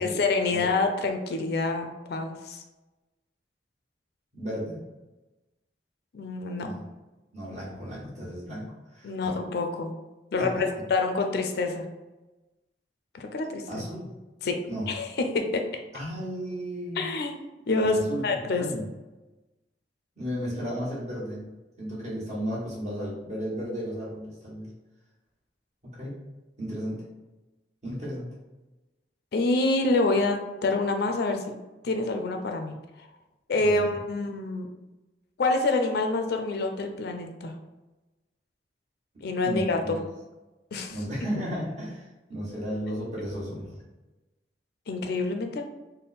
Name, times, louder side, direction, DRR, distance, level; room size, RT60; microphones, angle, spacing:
voice 1, 0.0-2.6 6.1-6.7 9.0-9.9 10.3-11.8 13.1-13.8 14.4-14.6 14.9-15.1 15.3-15.6 17.0-17.4 17.7-18.6 29.3-31.5 31.8-32.7 33.5-34.7 35.4-37.5 39.2-39.8 40.7-40.9 44.9-45.6, left 3 dB, 60° left, 4 dB, 0.4 m, -27 dB
voice 2, 4.3-4.8 6.6-6.9 7.3-9.3 10.4-10.7 13.7-14.1 14.7-14.9 15.9-17.1 17.8-18.2 18.5-18.9 20.2-24.7 25.9-26.1 26.6-27.0 27.8-28.3 33.6-34.0 39.4-40.1 40.9-43.8, equal, 40° right, -6 dB, 1.4 m, -34 dB
3.5 x 2.1 x 4.1 m, 1.1 s
head